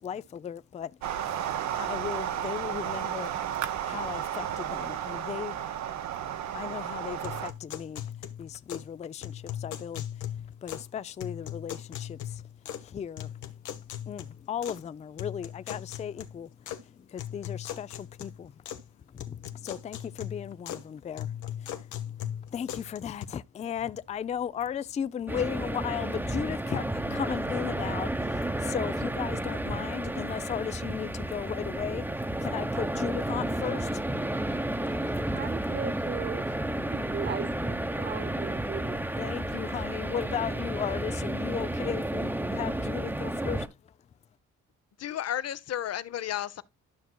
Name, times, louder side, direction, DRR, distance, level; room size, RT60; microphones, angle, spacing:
voice 1, 0.0-1.4 1.8-3.4 3.9-5.6 6.5-8.1 8.4-10.0 10.6-12.4 12.8-13.5 14.1-18.5 19.1-34.0 34.3-35.4 39.2-43.7, left 8 dB, 25° left, 0.3 m, -36 dB
sound 1, 1.0-7.5, right 10 dB, 65° right, 0.8 m, -33 dB
sound 2, 7.2-8.9 9.2-10.9 11.2-12.9 13.2-14.8 15.2-16.8 17.2-18.9 19.2-20.9 21.2-23.2, left 10 dB, 75° left, 1.0 m, -39 dB
sound 3, 25.3-43.7, right 1 dB, 5° right, 0.9 m, -32 dB
voice 2, 35.3-36.5 36.9-39.1, right 7 dB, 35° right, 0.6 m, -37 dB
voice 3, 45.0-46.6, left 11 dB, 55° left, 0.7 m, -32 dB
12.0 x 6.1 x 2.2 m
cardioid pair, 90°, 30 cm